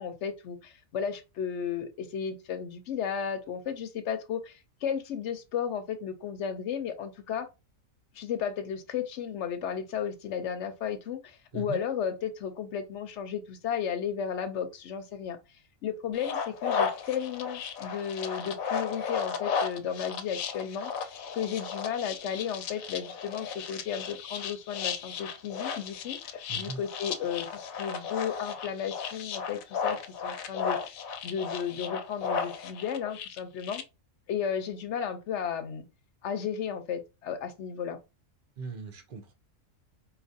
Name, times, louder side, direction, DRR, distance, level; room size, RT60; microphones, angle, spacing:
voice 1, 0.0-7.5 8.1-15.4 15.8-30.9 31.2-33.8 34.3-35.8 36.2-38.0, left 8 dB, 65° left, 0.8 m, -34 dB
sound 1, 16.1-33.8, left 6 dB, 85° left, 1.0 m, -34 dB
voice 2, 26.5-26.8 38.6-39.3, right 5 dB, 50° right, 0.6 m, -39 dB
4.3 x 2.5 x 2.6 m
omnidirectional pair, 1.4 m